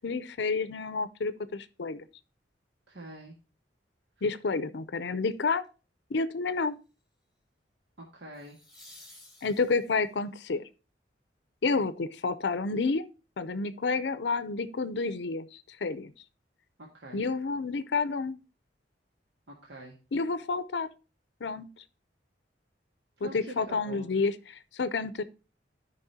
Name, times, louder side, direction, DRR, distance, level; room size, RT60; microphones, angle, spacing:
voice 1, 0.0-2.0 4.2-5.6 6.1-6.8 9.4-10.7 11.6-13.1 13.4-16.1 17.1-18.4 20.1-20.9 21.4-21.7 23.2-25.2, left 4 dB, 75° left, 0.6 m, -30 dB
voice 2, 2.9-3.3 8.1-8.6 16.8-17.2 19.5-20.0 23.2-24.1, right 1 dB, 75° right, 1.6 m, -45 dB
sound 1, 5.3-5.6 8.3-10.2 13.1-13.2, left 1 dB, 5° right, 2.0 m, -54 dB
13.5 x 5.2 x 2.8 m
head